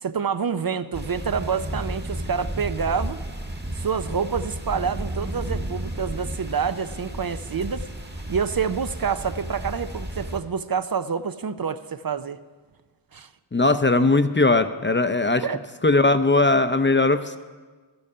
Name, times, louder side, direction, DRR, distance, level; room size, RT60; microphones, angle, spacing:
voice 1, 0.0-3.2 3.8-7.9 8.3-12.4 13.1-13.3 15.4-15.6, right 6 dB, 50° right, 12 dB, 0.6 m, -27 dB
sound 1, 0.9-10.4, right 1 dB, 20° right, 1.3 m, -33 dB
voice 2, 13.5-15.4 15.8-17.4, left 2 dB, 25° left, 10 dB, 0.6 m, -19 dB
13.5 x 8.7 x 5.6 m, 1.4 s
wide cardioid pair, 45°, 46 cm